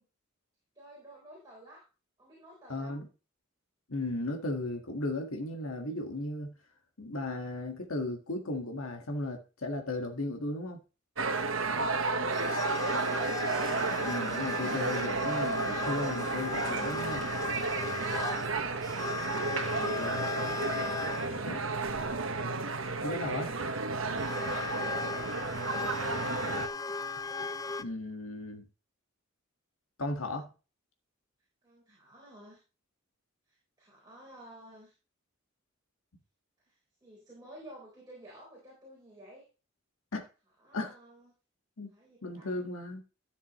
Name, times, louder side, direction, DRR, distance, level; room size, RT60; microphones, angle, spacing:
voice 1, 0.7-1.8 2.2-3.0 21.0-21.7 24.2-26.5 31.6-32.6 33.5-34.9 36.7-39.4 40.6-41.3 41.9-42.6, right 1 dB, 20° right, -5 dB, 4.0 m, -52 dB
voice 2, 2.7-3.1 3.9-6.6 7.0-10.8 14.0-17.3 19.8-20.2 21.4-21.6 23.0-23.5 27.8-28.6 30.0-30.5 40.1-40.2 40.7-40.9 41.8-41.9 42.2-43.0, left 2 dB, 90° left, 3 dB, 1.6 m, -35 dB
sound 1, 11.2-26.7, right 3 dB, 70° right, 1.2 m, -32 dB
sound 2, 12.3-21.3 22.7-23.2 24.2-27.8, left 4 dB, 15° left, 0.4 m, -37 dB
13.0 x 7.2 x 3.1 m, 0.33 s
head